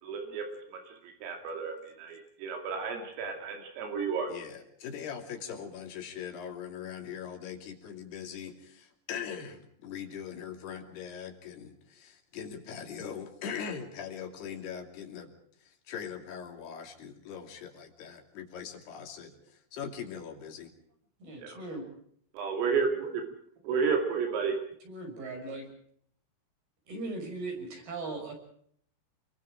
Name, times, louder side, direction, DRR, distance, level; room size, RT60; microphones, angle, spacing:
voice 1, 0.0-0.5 0.7-4.3 21.4-21.6 22.3-23.2 23.6-24.6, right 5 dB, 80° right, 3 dB, 5.1 m, -32 dB
voice 2, 4.3-15.3 15.6-20.7, left 7 dB, 55° left, 4 dB, 4.5 m, -41 dB
voice 3, 21.2-21.8 24.9-25.7 26.9-28.3, right 2 dB, 50° right, 2 dB, 8.1 m, -38 dB
28.5 x 23.5 x 5.0 m, 0.64 s
omnidirectional pair, 5.9 m